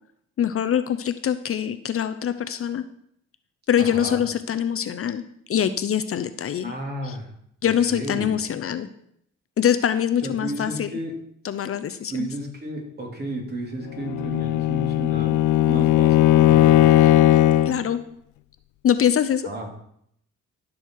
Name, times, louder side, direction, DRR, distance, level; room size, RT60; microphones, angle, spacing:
voice 1, 0.4-2.8 3.7-5.2 5.5-6.7 7.0-7.2 7.6-8.9 9.6-10.9 11.4-12.3 17.7-18.0 18.8-19.5, left 9 dB, 50° left, 11 dB, 0.7 m, -24 dB
voice 2, 3.8-4.2 6.6-7.3 7.6-8.3 10.2-11.1 12.1-17.4 19.4-19.7, right 1 dB, 35° right, 0 dB, 3.1 m, -33 dB
Bowed string instrument, 13.9-17.8, left 14 dB, 90° left, 0.6 m, -17 dB
13.5 x 6.4 x 4.7 m, 0.71 s
cardioid pair, 90°, 30 cm